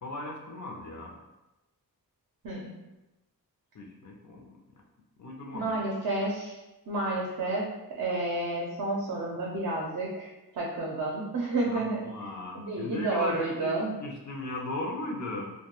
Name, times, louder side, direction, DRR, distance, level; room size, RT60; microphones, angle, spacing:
voice 1, 0.0-1.2 3.7-4.6 5.2-5.8 11.7-15.5, left 2 dB, 50° left, 0 dB, 0.5 m, -37 dB
voice 2, 2.4-2.8 5.5-6.6 6.9-12.1 12.7-13.9, right 2 dB, 55° right, -3 dB, 0.5 m, -31 dB
2.2 x 2.2 x 2.9 m, 1.0 s
wide cardioid pair, 85°, 37 cm